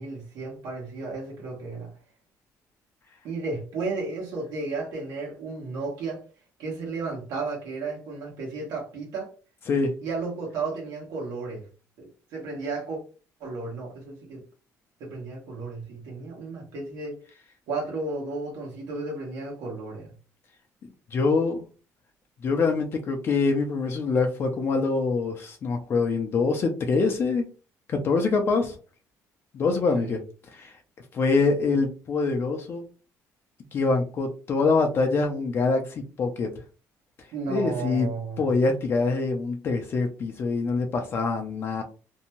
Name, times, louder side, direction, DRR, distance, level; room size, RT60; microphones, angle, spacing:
voice 1, 0.0-1.9 3.2-6.2 6.6-9.3 10.0-11.7 12.0-13.0 13.4-14.4 15.0-17.2 17.7-20.1 29.9-30.2 37.3-38.5, right 3 dB, 85° right, 1.0 m, -33 dB
voice 2, 21.1-21.6 22.4-27.4 27.9-28.8 29.5-30.2 30.5-30.8 31.1-32.8 33.7-36.5 37.5-38.1 38.4-41.8, left 4 dB, 40° left, 0.4 m, -24 dB
2.6 x 2.2 x 2.9 m
cardioid pair, 145°, 6 cm